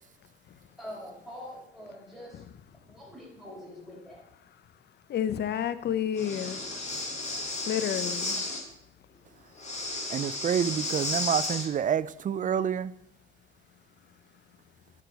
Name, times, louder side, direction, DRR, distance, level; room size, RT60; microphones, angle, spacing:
voice 1, 0.8-2.4 2.7-4.2, left 1 dB, ahead, 4.2 m, -44 dB
voice 2, 5.1-6.6 7.7-8.4, left 9 dB, 60° left, 0.7 m, -30 dB
Breathing, 6.1-8.6 9.6-11.7, left 2 dB, 35° left, 2.2 m, -33 dB
voice 3, 10.1-12.9, right 8 dB, 40° right, 0.4 m, -28 dB
10.5 x 4.8 x 5.1 m
cardioid pair, 90°, 20 cm